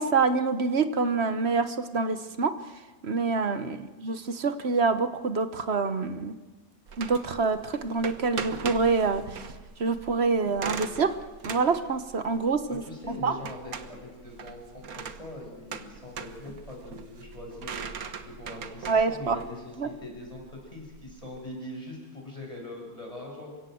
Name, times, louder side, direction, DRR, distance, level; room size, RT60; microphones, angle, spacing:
voice 1, 0.0-2.5 3.0-6.3 7.0-9.2 9.8-11.1 11.4-12.8 13.2-13.3 18.9-19.4 19.8-19.9, right 4 dB, 50° right, 11 dB, 1.3 m, -26 dB
voice 2, 3.5-3.8 12.7-23.5, left 1 dB, 25° left, -1 dB, 6.5 m, -42 dB
sound 1, 6.9-21.4, right 6 dB, 75° right, 1.7 m, -40 dB
28.5 x 16.5 x 7.8 m, 1.3 s
omnidirectional pair, 1.5 m